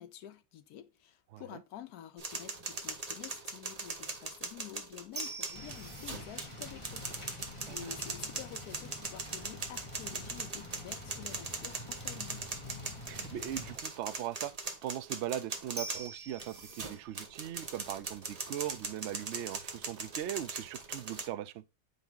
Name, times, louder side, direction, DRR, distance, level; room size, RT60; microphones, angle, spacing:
voice 1, 0.0-12.4, left 11 dB, 75° left, 1.2 m, -49 dB
sound 1, 2.2-21.3, right 3 dB, 30° right, 0.8 m, -40 dB
sound 2, 5.5-13.8, left 2 dB, 20° left, 1.4 m, -47 dB
voice 2, 13.1-14.5 14.8-21.6, right 12 dB, 80° right, 0.6 m, -39 dB
7.1 x 4.6 x 3.8 m
omnidirectional pair, 1.7 m